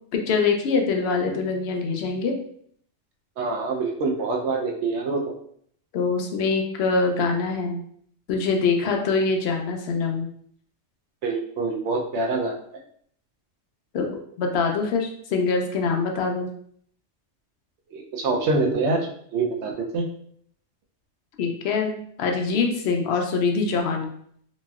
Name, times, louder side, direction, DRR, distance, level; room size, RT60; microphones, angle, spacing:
voice 1, 0.1-2.3 5.9-7.8 8.3-10.3 13.9-14.1 14.4-16.5 21.4-24.1, left 4 dB, 65° left, 3 dB, 0.8 m, -24 dB
voice 2, 3.4-5.2 11.2-12.6 17.9-20.1, right 3 dB, 70° right, 1 dB, 0.9 m, -25 dB
3.0 x 2.6 x 2.3 m, 0.63 s
omnidirectional pair, 1.2 m